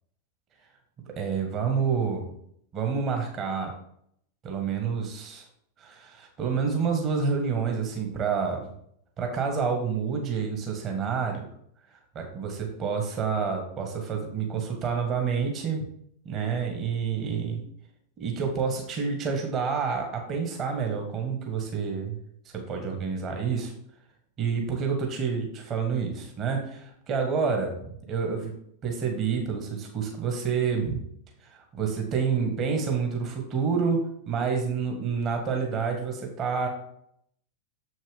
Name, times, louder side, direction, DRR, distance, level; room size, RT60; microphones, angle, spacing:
voice 1, 1.1-2.3 2.7-3.7 4.4-5.4 5.8-8.7 9.2-11.5 12.1-15.8 16.2-17.6 18.2-22.1 22.5-23.7 24.4-28.5 28.8-31.0 31.4-36.7, right 5 dB, 30° right, 2 dB, 1.6 m, -28 dB
7.3 x 6.3 x 3.6 m, 0.68 s
figure-of-eight pair, 90°, 0 cm